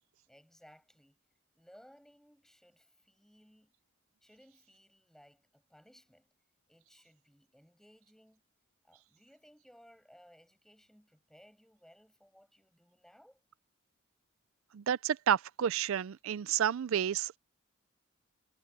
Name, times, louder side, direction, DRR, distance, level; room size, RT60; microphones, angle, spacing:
voice 1, 0.3-1.2 1.5-3.7 4.2-6.3 6.7-8.4 8.8-13.4, equal, ahead, 6.0 m, -61 dB
voice 2, 14.7-17.4, right 9 dB, 75° right, 0.4 m, -30 dB
head